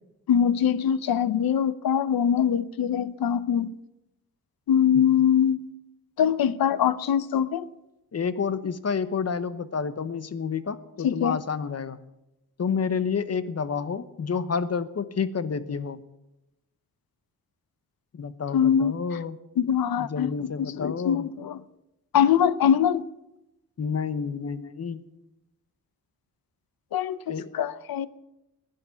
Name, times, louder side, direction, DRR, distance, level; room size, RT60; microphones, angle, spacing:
voice 1, 0.3-3.8 4.7-5.7 6.2-7.7 11.0-11.4 18.5-19.2 19.6-21.6 22.1-23.1 26.9-28.1, left 8 dB, 90° left, 0.8 m, -23 dB
voice 2, 8.1-12.0 12.6-16.0 18.1-19.4 20.0-21.3 23.8-25.0 27.3-27.5, left 6 dB, 45° left, 1.0 m, -29 dB
16.0 x 11.0 x 7.1 m
cardioid pair, 90°, 35 cm